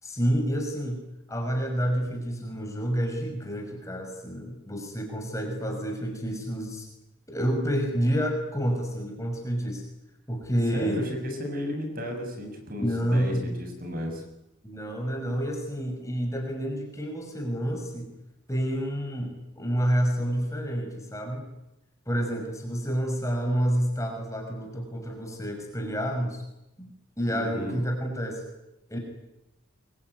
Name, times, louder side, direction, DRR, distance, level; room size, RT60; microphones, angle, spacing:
voice 1, 0.0-1.0 1.3-6.9 7.3-9.8 10.3-11.0 12.8-13.6 14.6-18.1 18.5-21.5 22.1-26.4 26.8-28.4 28.9-29.0, equal, 15° left, 2 dB, 6.0 m, -29 dB
voice 2, 10.7-14.2 27.3-27.8, equal, 45° right, 3 dB, 7.4 m, -34 dB
25.0 x 23.5 x 9.6 m, 0.90 s
head